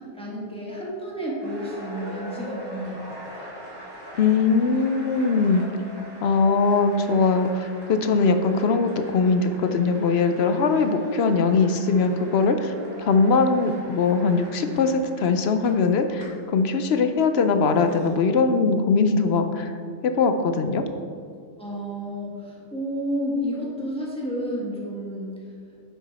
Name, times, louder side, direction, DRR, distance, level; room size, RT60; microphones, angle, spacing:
voice 1, 0.1-3.5 21.6-25.3, equal, 5° left, -5 dB, 1.6 m, -31 dB
sound 1, 1.4-18.1, equal, 70° right, 2.6 m, -42 dB
voice 2, 4.2-5.6 6.2-12.7 13.0-19.7 20.0-20.8, left 4 dB, 60° left, 8 dB, 0.7 m, -21 dB
9.3 x 6.1 x 4.1 m, 2.3 s
omnidirectional pair, 1.4 m